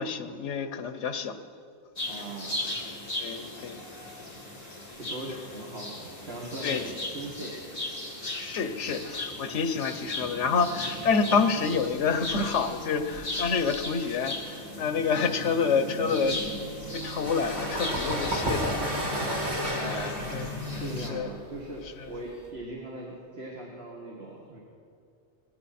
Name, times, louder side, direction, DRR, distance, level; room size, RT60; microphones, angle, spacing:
voice 1, 0.0-1.4 3.2-3.8 6.6-6.8 8.3-16.5 16.9-19.0 19.8-20.5 20.7-20.8 21.1-21.3 22.0-22.1, left 5 dB, 80° left, 10 dB, 1.2 m, -28 dB
sound 1, 2.0-21.1, left 1 dB, 35° left, 2.2 m, -37 dB
voice 2, 2.1-2.7 4.9-7.6 19.0-20.1 20.7-24.6, right 1 dB, 60° right, -2 dB, 1.9 m, -40 dB
sound 2, 17.0-22.5, equal, 40° right, 2.4 m, -32 dB
20.0 x 16.0 x 4.3 m, 2.5 s
omnidirectional pair, 1.2 m